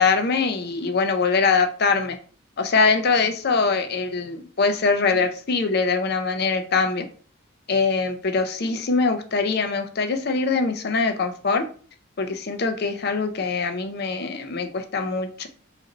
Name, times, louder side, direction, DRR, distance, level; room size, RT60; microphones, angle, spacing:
voice 1, 0.0-2.2 2.6-7.1 7.7-11.7 12.2-15.5, left 4 dB, 50° left, 0.5 m, -23 dB
4.0 x 2.6 x 4.0 m
head